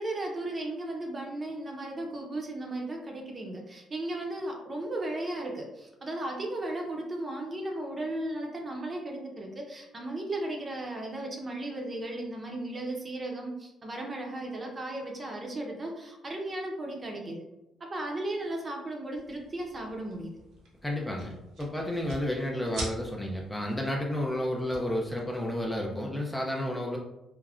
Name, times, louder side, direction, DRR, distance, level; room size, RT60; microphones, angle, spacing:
voice 1, 0.0-17.4 17.8-20.3, right 1 dB, 30° right, 1 dB, 0.7 m, -35 dB
sound 1, 19.1-25.9, right 1 dB, 80° right, 0.8 m, -45 dB
voice 2, 20.8-27.0, left 1 dB, 10° left, -1 dB, 0.5 m, -31 dB
3.4 x 2.1 x 2.4 m, 0.93 s
supercardioid pair, 75°, 0 cm